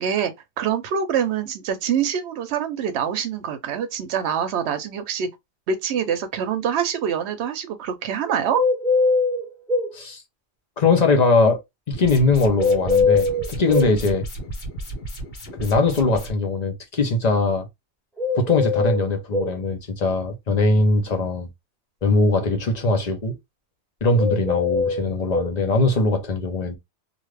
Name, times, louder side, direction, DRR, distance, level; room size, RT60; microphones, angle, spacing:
voice 1, 0.0-5.3 5.7-8.6, right 8 dB, 85° right, 0.9 m, -25 dB
sound 1, 8.5-9.9 12.6-14.0 18.2-19.6 24.1-25.5, left 3 dB, ahead, 0.8 m, -21 dB
voice 2, 10.8-11.6 11.9-14.3 15.6-17.7 18.3-21.5 22.0-23.4 24.0-26.8, left 3 dB, 45° left, 0.8 m, -21 dB
sound 2, 11.9-16.3, right 1 dB, 65° left, 1.2 m, -34 dB
2.6 x 2.4 x 3.2 m
omnidirectional pair, 1.1 m